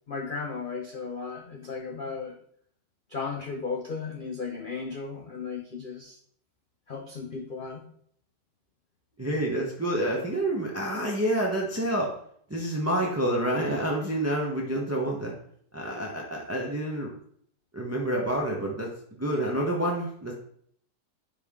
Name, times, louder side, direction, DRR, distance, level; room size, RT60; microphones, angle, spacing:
voice 1, 0.1-2.4 3.1-6.2 6.9-7.8, left 4 dB, 85° left, 2 dB, 0.4 m, -35 dB
voice 2, 9.2-12.1 12.5-15.3 15.7-17.1 17.7-18.9 19.2-20.3, right 1 dB, 15° right, -2 dB, 0.5 m, -28 dB
9.8 x 3.5 x 3.6 m, 0.63 s
omnidirectional pair, 1.9 m